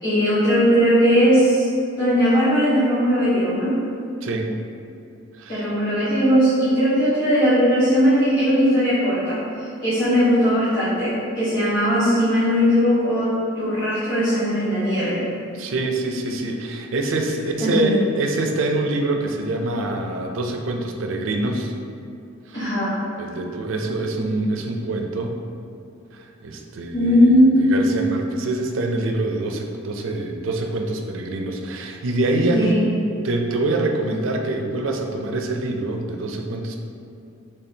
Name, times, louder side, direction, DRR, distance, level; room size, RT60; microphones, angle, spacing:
voice 1, 0.0-1.7 2.0-3.8 5.5-15.2 17.6-18.0 22.5-23.0 26.9-27.6 32.3-32.9, equal, 50° left, -14 dB, 1.2 m, -19 dB
voice 2, 5.4-5.7 15.5-21.7 22.5-22.7 23.2-25.4 26.1-32.8 33.2-36.8, right 2 dB, 90° right, 3 dB, 0.4 m, -25 dB
4.2 x 3.4 x 2.7 m, 2.6 s
head